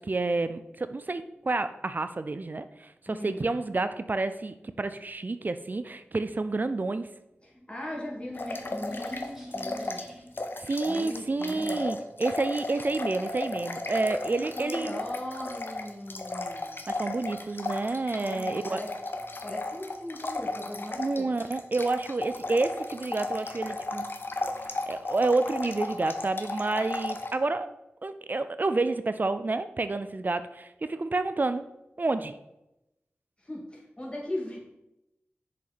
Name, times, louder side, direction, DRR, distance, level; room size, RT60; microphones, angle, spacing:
voice 1, 0.0-7.1 10.6-15.0 16.9-18.8 21.0-24.1 24.9-27.7 28.0-31.6 32.0-32.4, right 3 dB, 45° right, 11 dB, 0.4 m, -29 dB
voice 2, 3.1-3.4 7.4-10.0 10.8-11.8 14.2-16.7 18.2-18.9 19.4-21.3 33.4-34.6, left 1 dB, 25° left, -3 dB, 2.3 m, -39 dB
sound 1, 7.4-10.5, equal, 10° right, 2.9 m, -44 dB
sound 2, 8.3-10.1 10.4-27.3, left 2 dB, 55° left, 0.8 m, -35 dB
6.6 x 5.2 x 4.2 m, 0.90 s
wide cardioid pair, 50°, 4 cm